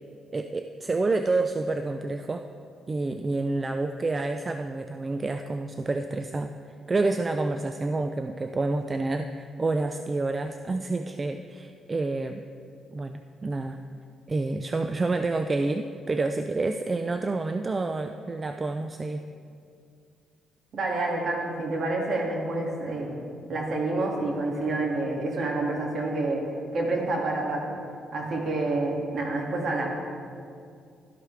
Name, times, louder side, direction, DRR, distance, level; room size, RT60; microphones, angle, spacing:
voice 1, 0.3-2.5 2.9-6.5 6.9-12.4 12.9-13.8 14.3-19.2, right 3 dB, 25° right, 7 dB, 0.4 m, -28 dB
voice 2, 20.7-23.2 23.5-26.4 26.7-27.7 28.1-29.9, right 2 dB, 55° right, -1 dB, 2.3 m, -28 dB
12.5 x 11.5 x 3.4 m, 2.3 s
cardioid pair, 100°, 0 cm